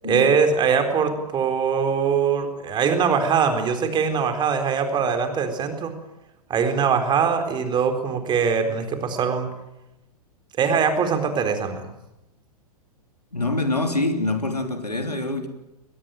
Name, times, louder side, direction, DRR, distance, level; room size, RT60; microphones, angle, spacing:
voice 1, 0.0-5.9 6.5-9.5 10.6-11.9, right 6 dB, 20° right, 4.1 m, -22 dB
voice 2, 13.3-15.5, left 2 dB, 90° left, 3.4 m, -25 dB
22.5 x 21.0 x 9.1 m
figure-of-eight pair, 110°, 20 cm